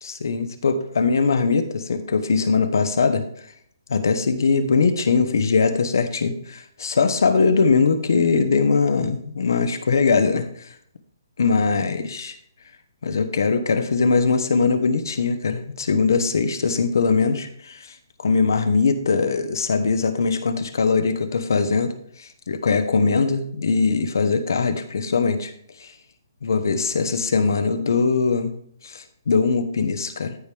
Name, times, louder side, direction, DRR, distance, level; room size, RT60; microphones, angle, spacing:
voice 1, 0.0-3.2 3.9-10.5 11.4-12.4 13.0-17.9 18.2-21.9 22.2-25.5 25.8-25.9 26.4-28.5 28.8-30.4, left 4 dB, 65° left, 9 dB, 1.2 m, -21 dB
14.0 x 5.1 x 3.5 m, 0.65 s
hypercardioid pair, 175°, 2 cm